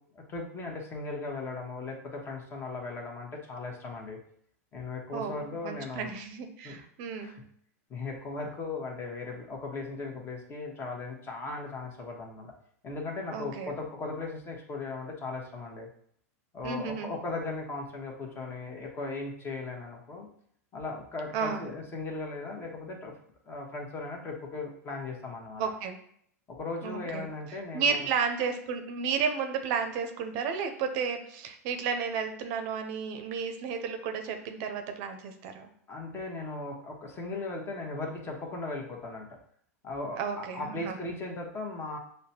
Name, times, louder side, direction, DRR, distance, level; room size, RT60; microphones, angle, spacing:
voice 1, 0.1-4.2 4.7-6.1 6.6-6.8 7.2-7.4 7.9-12.5 12.8-15.9 16.5-20.3 20.7-23.1 23.5-25.6 26.5-28.1 35.9-39.4 39.8-42.0, left 3 dB, 30° left, 1 dB, 1.0 m, -37 dB
voice 2, 5.1-7.4 13.3-13.7 16.6-17.1 21.3-21.7 25.6-26.0 26.8-35.7 40.2-41.0, right 6 dB, 55° right, 6 dB, 0.6 m, -33 dB
6.4 x 2.2 x 2.8 m, 0.66 s
hypercardioid pair, 105°, 8 cm